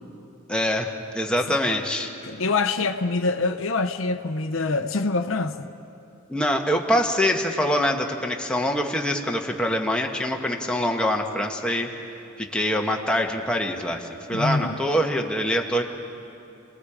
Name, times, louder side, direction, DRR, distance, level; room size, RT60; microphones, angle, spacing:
voice 1, 0.5-2.1 6.3-11.9 12.4-15.8, equal, 5° left, 1 dB, 1.2 m, -24 dB
voice 2, 2.2-5.7 14.3-14.8, left 3 dB, 65° left, 8 dB, 0.7 m, -25 dB
30.0 x 19.5 x 5.0 m, 2.7 s
head